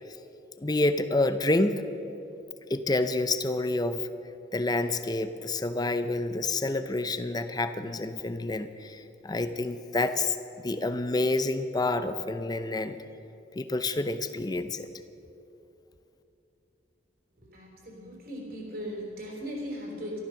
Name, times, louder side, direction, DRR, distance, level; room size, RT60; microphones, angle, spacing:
voice 1, 0.6-1.8 2.7-4.0 4.5-13.0 13.6-14.9, left 2 dB, 20° left, 10 dB, 0.6 m, -28 dB
voice 2, 17.4-20.2, equal, 55° right, -1 dB, 3.6 m, -38 dB
13.5 x 13.0 x 6.4 m, 2.8 s
head